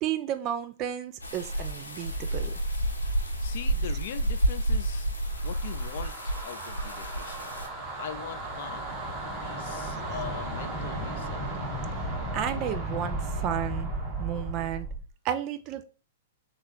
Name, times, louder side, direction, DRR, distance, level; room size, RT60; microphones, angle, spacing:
voice 1, 0.0-2.5 12.3-13.9 14.2-14.9 15.2-15.8, right 10 dB, 35° right, 9 dB, 0.4 m, -32 dB
sound 1, 1.2-7.7, right 1 dB, 85° left, 0.8 m, -30 dB
voice 2, 3.4-5.1 5.4-7.5 8.0-8.9 9.4-11.4, left 9 dB, 55° left, 10 dB, 0.3 m, -41 dB
sound 2, 5.3-15.1, right 1 dB, 20° right, 1.6 m, -35 dB
3.1 x 2.4 x 3.6 m, 0.36 s
figure-of-eight pair, 105°, 0 cm